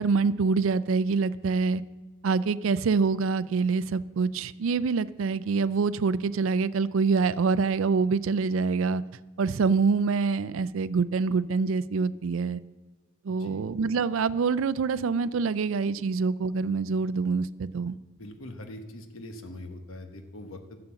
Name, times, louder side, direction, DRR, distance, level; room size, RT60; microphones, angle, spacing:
voice 1, 0.0-1.8 2.2-9.0 9.4-12.6 13.2-18.0, right 4 dB, 75° right, 0.4 m, -25 dB
voice 2, 13.3-13.6 18.2-20.8, left 1 dB, 85° left, 1.1 m, -42 dB
11.5 x 6.8 x 7.0 m
head